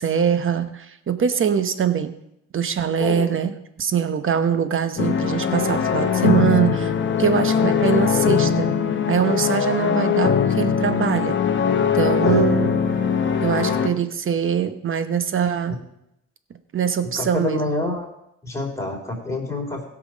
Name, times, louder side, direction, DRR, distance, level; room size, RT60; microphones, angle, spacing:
voice 1, 0.0-2.2 2.5-6.9 7.2-8.7 9.1-11.4 11.9-12.8 13.4-15.8 16.7-17.6, right 8 dB, 45° right, 10 dB, 1.0 m, -23 dB
voice 2, 3.0-3.3 12.2-12.6 17.1-18.1 18.4-19.9, left 2 dB, 10° left, 0 dB, 3.3 m, -27 dB
sound 1, 5.0-13.9, left 7 dB, 40° left, 1.1 m, -21 dB
16.0 x 6.0 x 5.1 m, 0.84 s
cardioid pair, 90°, 30 cm